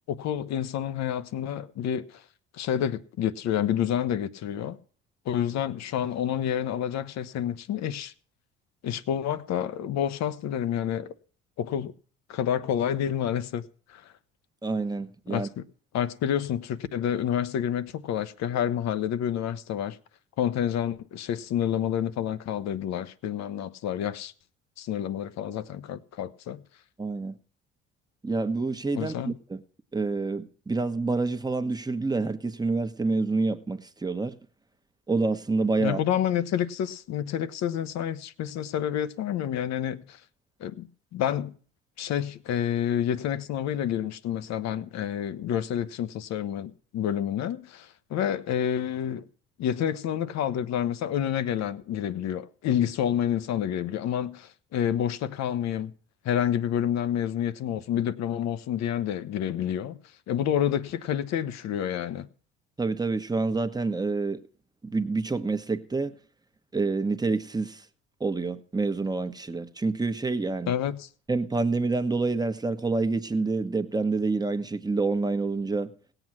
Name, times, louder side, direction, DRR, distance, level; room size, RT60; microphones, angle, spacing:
voice 1, 0.1-2.2 2.6-4.8 5.3-8.1 8.8-11.1 11.6-11.9 12.3-13.6 13.9-14.0 15.3-15.6 15.9-20.0 20.4-24.3 24.8-26.6 28.9-29.3 35.8-40.2 40.6-41.5 42.0-49.3 49.6-55.9 56.2-60.0 60.3-62.3 70.7-71.1, left 10 dB, 60° left, 1.0 m, -29 dB
voice 2, 14.6-15.5 27.0-27.4 28.2-29.6 29.9-34.3 35.1-36.0 62.8-64.4 64.8-66.2 66.7-67.8 68.2-70.7 71.3-75.9, right 3 dB, 15° right, 1.2 m, -27 dB
17.0 x 8.0 x 6.1 m
hypercardioid pair, 65°, 30 cm